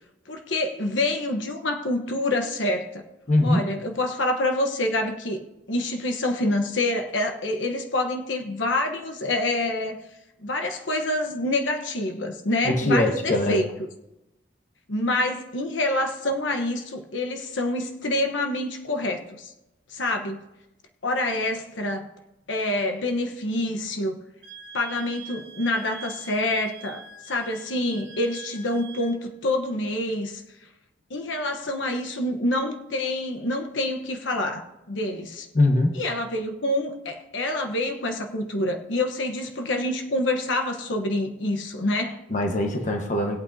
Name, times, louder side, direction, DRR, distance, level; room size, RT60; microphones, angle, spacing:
voice 1, 0.3-3.0 3.4-10.0 10.4-13.7 14.9-19.5 19.9-20.4 21.0-22.1 22.5-24.1 24.7-30.4 31.1-35.5 35.9-42.2, left 1 dB, 80° left, 4 dB, 1.1 m, -27 dB
voice 2, 3.3-3.6 12.6-13.6 35.5-35.9 42.3-43.4, left 1 dB, 40° left, 3 dB, 1.3 m, -22 dB
Wind instrument woodwind instrument, 24.4-29.2, right 5 dB, 70° right, 1.7 m, -44 dB
20.0 x 8.6 x 2.8 m, 0.95 s
head